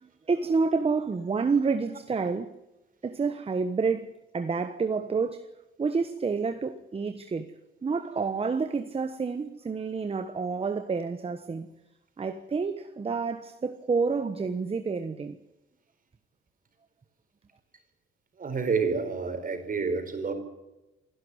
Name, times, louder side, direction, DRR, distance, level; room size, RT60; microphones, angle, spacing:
voice 1, 0.0-2.5 3.0-5.5 5.8-7.5 7.8-11.7 12.2-15.4, right 4 dB, 30° right, 1.2 m, -29 dB
voice 2, 18.4-20.3, right 5 dB, 45° right, 4.7 m, -29 dB
27.5 x 11.5 x 9.7 m
cardioid pair, 90°, 20 cm